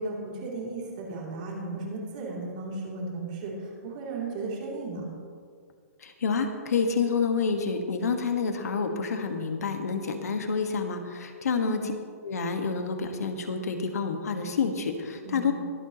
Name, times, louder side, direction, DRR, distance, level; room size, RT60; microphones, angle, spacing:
voice 1, 0.0-5.0 11.5-11.8 15.2-15.5, right 3 dB, 30° right, -3 dB, 3.0 m, -35 dB
voice 2, 6.0-11.8 12.2-15.5, left 5 dB, 75° left, 5 dB, 1.6 m, -28 dB
22.5 x 9.1 x 3.0 m, 2.1 s
hypercardioid pair, 180°, 9 cm